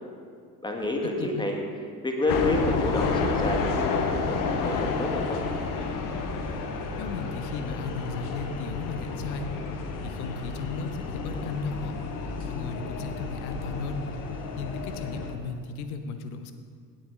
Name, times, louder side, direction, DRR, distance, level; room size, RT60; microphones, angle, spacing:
voice 1, 0.6-1.6 2.0-5.4, left 2 dB, 10° left, 1 dB, 1.5 m, -29 dB
sound 1, 2.3-15.4, left 4 dB, 45° left, 1.1 m, -31 dB
voice 2, 7.0-9.5 10.0-11.9 12.4-14.1 14.6-16.5, left 4 dB, 65° left, 8 dB, 0.9 m, -35 dB
17.0 x 8.9 x 2.5 m, 2.2 s
figure-of-eight pair, 60°, 46 cm